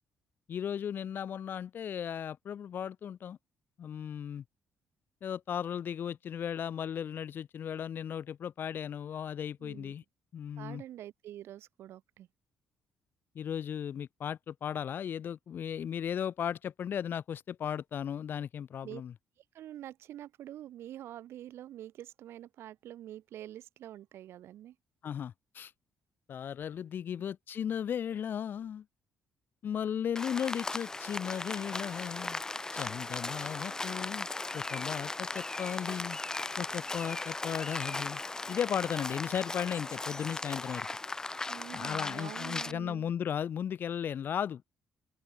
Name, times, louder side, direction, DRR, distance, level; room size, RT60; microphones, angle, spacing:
voice 1, 0.5-3.4 3.8-4.4 5.2-10.0 10.3-10.8 13.3-19.1 25.0-25.7 26.3-28.8 29.6-32.4 32.7-34.3 34.5-36.2 36.6-38.2 38.5-40.9 41.7-44.7, left 8 dB, 50° left, 1.2 m, -36 dB
voice 2, 9.6-9.9 10.6-12.3 18.8-19.0 19.5-24.8 41.5-43.1, right 12 dB, 75° right, 3.4 m, -46 dB
Rain, 30.2-42.7, left 2 dB, 15° left, 0.5 m, -37 dB
open air
cardioid pair, 120°, 4 cm